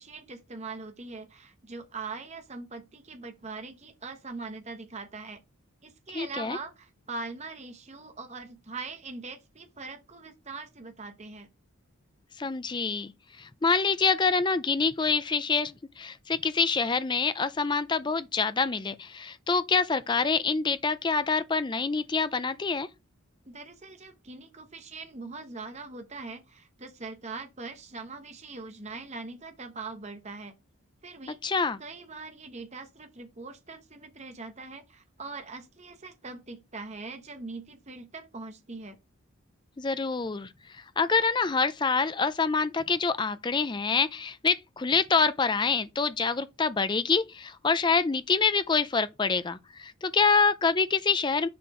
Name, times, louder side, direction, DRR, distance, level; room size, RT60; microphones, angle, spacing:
voice 1, 0.0-5.4 5.8-11.5 23.5-30.5 31.0-31.4 31.8-39.0, right 3 dB, 30° right, 1.0 m, -41 dB
voice 2, 6.1-6.6 12.4-13.1 13.4-22.9 31.4-31.8 39.8-51.5, left 4 dB, 20° left, 0.4 m, -26 dB
6.9 x 4.3 x 4.9 m
head